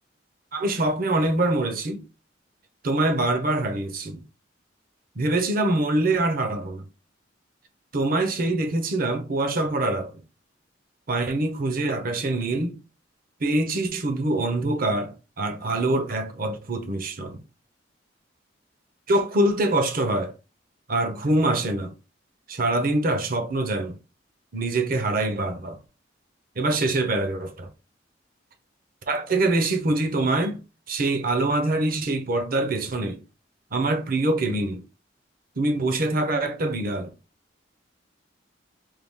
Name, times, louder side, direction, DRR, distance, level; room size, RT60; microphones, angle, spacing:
voice 1, 0.5-2.0 2.8-4.2 5.2-6.8 7.9-10.1 11.1-12.8 13.4-17.4 19.1-20.3 20.9-21.9 22.5-24.0 24.5-25.8 26.6-27.7 29.1-30.6 30.9-33.2 33.7-34.8 35.6-37.1, right 2 dB, 50° right, 0.7 m, -24 dB
4.7 x 2.3 x 3.5 m
head